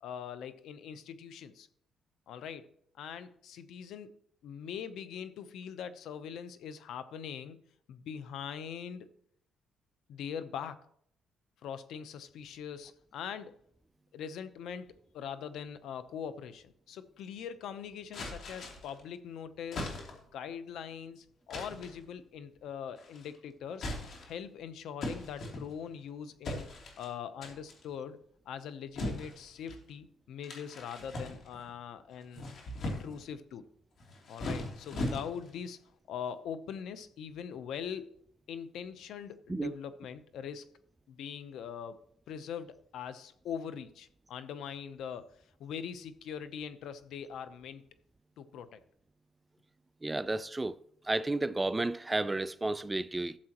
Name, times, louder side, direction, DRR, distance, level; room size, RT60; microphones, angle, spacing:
voice 1, 0.0-1.7 2.3-2.7 3.0-4.1 4.4-7.6 7.9-9.1 10.1-10.8 11.6-13.6 14.1-19.9 20.3-23.9 24.2-26.7 27.0-28.2 28.5-33.6 34.3-35.8 36.1-38.1 38.5-40.7 41.1-42.0 42.3-45.3 45.6-47.8 48.4-48.8, left 8 dB, 80° left, 0.7 m, -42 dB
sound 1, 18.1-19.0 19.7-20.4 21.5-22.0 23.0-23.4 23.7-24.5 25.0-26.0 26.4-27.1 27.4-27.8 29.0-29.8 30.4-31.7 32.2-33.3 34.0-35.6, left 1 dB, 60° left, 3.0 m, -39 dB
voice 2, 50.0-50.8 51.1-53.4, right 2 dB, 15° right, 0.4 m, -32 dB
13.0 x 7.5 x 3.0 m
cardioid pair, 90°, 0 cm